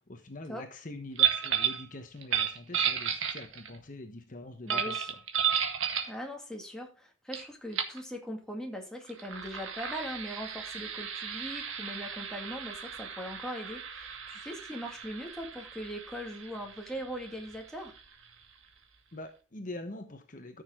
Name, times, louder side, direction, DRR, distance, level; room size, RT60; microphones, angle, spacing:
voice 1, 0.0-5.2 19.1-20.6, left 2 dB, 40° left, 6 dB, 1.0 m, -44 dB
sound 1, 1.2-1.8 2.2-3.8 4.7-6.2 7.3-7.4 7.7-8.0 9.0-18.3, right 8 dB, 90° right, 1.8 m, -33 dB
voice 2, 4.6-5.1 6.0-17.9, equal, 5° left, 1 dB, 2.1 m, -40 dB
14.0 x 6.6 x 3.7 m, 0.36 s
head